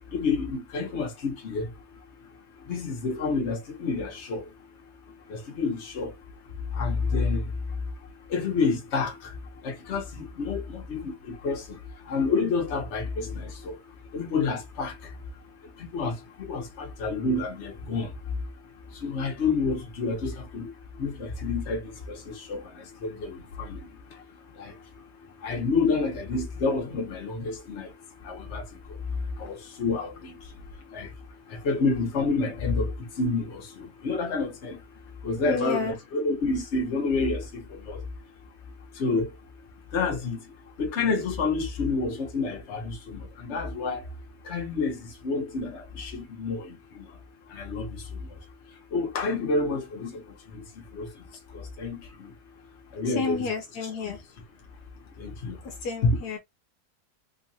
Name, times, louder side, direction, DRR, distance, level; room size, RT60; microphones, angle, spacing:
voice 1, 0.1-1.7 2.7-4.5 5.3-6.1 6.7-7.5 8.3-9.3 9.6-11.8 12.1-13.8 14.1-15.1 15.8-18.1 19.0-20.7 21.0-23.8 24.6-24.7 25.4-27.9 28.2-28.6 29.4-30.3 30.9-31.1 31.5-34.8 35.2-38.0 39.0-39.3 39.9-40.4 40.8-44.0 44.4-47.1 47.5-48.0 48.9-50.2 50.5-50.6 50.9-51.1 51.5-52.3 52.9-53.5 53.8-54.1 55.2-55.6 56.0-56.1, left 4 dB, 45° left, 1.3 m, -29 dB
voice 2, 35.4-36.0 53.1-54.2 55.6-56.4, left 4 dB, 75° left, 1.3 m, -31 dB
3.9 x 2.5 x 2.7 m
omnidirectional pair, 1.7 m